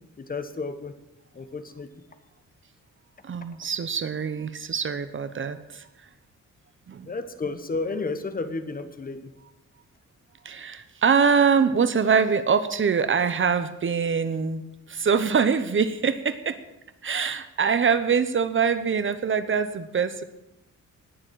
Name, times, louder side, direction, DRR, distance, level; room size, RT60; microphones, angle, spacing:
voice 1, 0.2-0.9 1.3-1.9 7.0-9.3, left 3 dB, 30° left, 10 dB, 1.2 m, -32 dB
voice 2, 3.2-5.9 6.9-7.1 10.4-16.6 17.0-20.2, right 6 dB, 40° right, 12 dB, 0.9 m, -24 dB
19.0 x 7.2 x 9.0 m, 0.92 s
wide cardioid pair, 155°, 30 cm